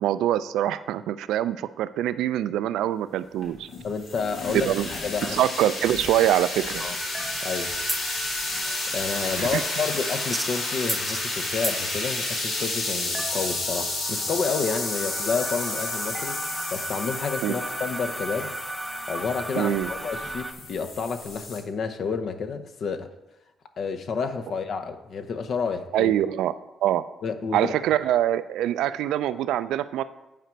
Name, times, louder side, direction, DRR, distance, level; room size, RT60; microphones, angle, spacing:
voice 1, 0.0-3.7 4.5-4.9 5.3-6.8 9.4-9.6 17.4-17.5 19.6-19.9 25.9-26.5 26.8-27.1 27.5-30.0, right 12 dB, 85° right, 13 dB, 0.3 m, -24 dB
sound 1, 3.4-21.6, left 2 dB, 75° left, 2.2 m, -31 dB
voice 2, 3.8-4.7 5.0-5.4 6.8-7.0 7.4-7.7 8.9-18.6 19.1-23.1 23.8-26.1 27.2-27.7, left 5 dB, 60° left, 8 dB, 0.7 m, -30 dB
sound 2, 6.8-20.5, right 1 dB, 5° right, 0.6 m, -36 dB
9.2 x 5.1 x 4.5 m, 0.98 s
cardioid pair, 90°, 0 cm